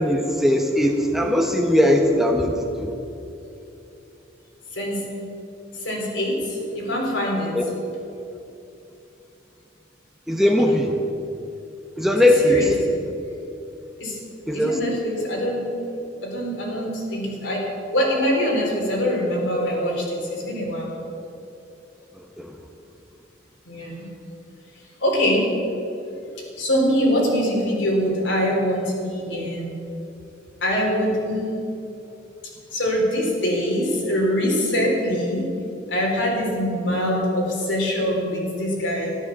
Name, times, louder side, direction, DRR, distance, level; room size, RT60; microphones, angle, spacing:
voice 1, 0.0-2.9 7.6-7.7 10.3-10.9 12.0-12.7 14.5-14.8 22.4-22.5, left 1 dB, ahead, 2 dB, 0.9 m, -19 dB
voice 2, 4.7-5.1 5.7-7.5 10.4-10.6 12.1-12.7 14.0-14.2 14.5-15.7 16.2-17.7 17.9-20.9 23.7-24.1 25.0-25.5 26.6-29.7 30.6-31.5 32.7-35.5 35.9-39.2, equal, 75° left, -2 dB, 4.1 m, -23 dB
13.0 x 12.0 x 7.3 m, 2.8 s
head